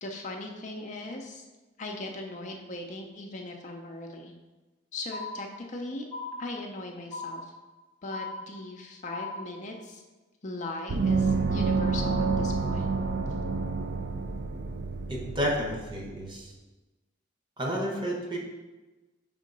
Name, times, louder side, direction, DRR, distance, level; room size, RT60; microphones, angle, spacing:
voice 1, 0.0-1.4 1.8-4.3 4.9-6.1 6.4-7.5 8.0-10.0 10.4-12.9, left 2 dB, 40° left, 2 dB, 0.5 m, -39 dB
sound 1, 5.1-5.8 6.1-6.8 7.1-7.8 8.1-8.8 9.1-9.8, left 3 dB, 90° right, 1.4 m, -39 dB
Gong, 10.9-16.1, right 4 dB, 55° right, 0.5 m, -28 dB
voice 2, 15.1-16.5 17.6-18.4, equal, 25° right, -1 dB, 1.0 m, -31 dB
4.9 x 3.7 x 5.2 m, 1.2 s
head